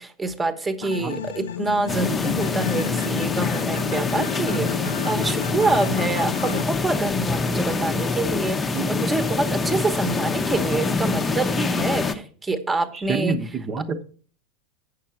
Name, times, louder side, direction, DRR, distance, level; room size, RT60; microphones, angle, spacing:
voice 1, 0.0-13.4, right 2 dB, 15° right, 1.1 m, -26 dB
sound 1, 0.8-6.6, left 9 dB, 75° left, 0.5 m, -32 dB
voice 2, 0.8-1.2 5.6-6.0 8.7-8.9 12.9-14.0, right 5 dB, 35° right, 0.9 m, -28 dB
sound 2, 1.9-12.1, left 4 dB, 20° left, 0.8 m, -25 dB
8.6 x 6.5 x 5.8 m
hypercardioid pair, 90°, 0 cm